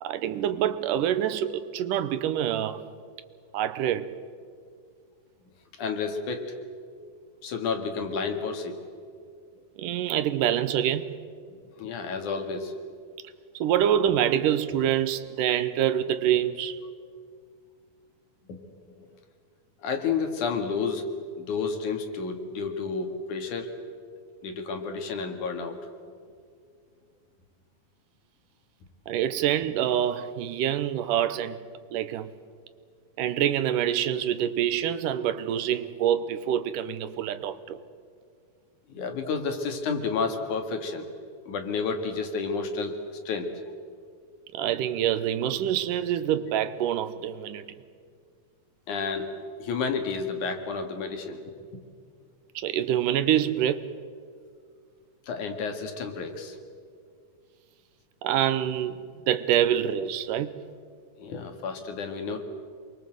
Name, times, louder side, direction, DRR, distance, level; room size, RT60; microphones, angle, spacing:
voice 1, 0.0-2.8 3.5-4.1 9.8-11.1 13.5-16.8 29.1-31.6 31.9-32.3 33.2-37.8 44.5-47.7 52.6-53.9 58.2-59.0 59.3-60.6, right 10 dB, 80° right, 2.5 m, -26 dB
voice 2, 5.8-6.5 7.4-8.8 11.8-12.7 18.5-19.1 19.8-21.1 21.4-23.7 24.4-25.8 38.9-41.1 41.5-43.0 43.3-43.5 48.9-49.3 49.6-51.4 55.3-56.6 61.2-62.4, left 5 dB, 65° left, 3.4 m, -31 dB
28.0 x 22.5 x 7.9 m
omnidirectional pair, 3.8 m